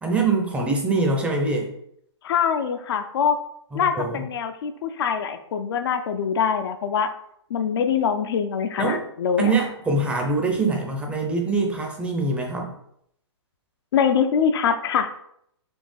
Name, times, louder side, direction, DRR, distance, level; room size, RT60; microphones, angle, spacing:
voice 1, 0.0-1.7 3.7-4.2 8.8-9.0 9.4-12.7, right 3 dB, 10° right, 1 dB, 0.5 m, -24 dB
voice 2, 2.2-3.4 3.7-7.1 7.5-9.5 13.9-15.1, left 7 dB, 55° left, 8 dB, 0.4 m, -23 dB
4.3 x 2.8 x 3.2 m, 0.72 s
hypercardioid pair, 135°, 15 cm